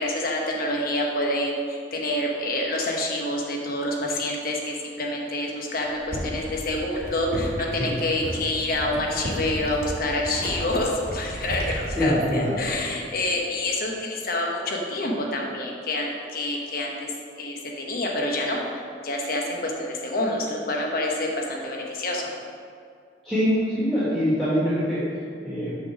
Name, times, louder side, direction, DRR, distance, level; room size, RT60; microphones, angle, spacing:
voice 1, 0.0-17.1 17.4-22.3, left 1 dB, 55° left, -1 dB, 0.9 m, -27 dB
sound 1, 5.9-13.0 13.3-13.7, equal, 60° right, 1.3 m, -33 dB
voice 2, 11.9-12.6 23.2-25.8, equal, ahead, -12 dB, 1.7 m, -24 dB
6.4 x 4.0 x 6.2 m, 2.3 s
head